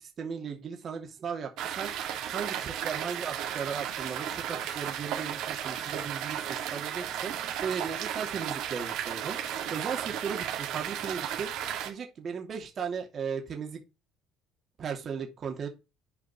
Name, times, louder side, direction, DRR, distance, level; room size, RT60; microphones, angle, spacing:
voice 1, 0.0-2.0 2.3-7.3 7.6-9.4 9.7-13.8 14.8-15.7, right 6 dB, 45° right, 3 dB, 2.7 m, -36 dB
sound 1, 1.6-11.9, right 10 dB, 70° right, 2.6 m, -34 dB
11.0 x 5.2 x 4.4 m, 0.27 s
supercardioid pair, 90°, 0 cm